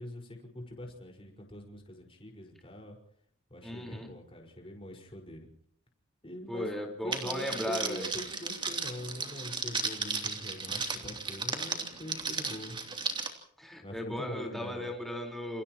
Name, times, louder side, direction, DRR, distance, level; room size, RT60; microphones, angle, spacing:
voice 1, 0.0-3.0 3.5-5.5 6.2-6.7 7.0-12.8 13.8-14.9, left 1 dB, 25° left, 1 dB, 5.4 m, -43 dB
voice 2, 3.6-4.1 6.5-8.1 13.6-15.6, left 1 dB, ahead, 1 dB, 4.6 m, -36 dB
Crackle, 7.1-13.3, right 4 dB, 25° right, 3.2 m, -35 dB
29.0 x 29.0 x 3.1 m, 0.63 s
head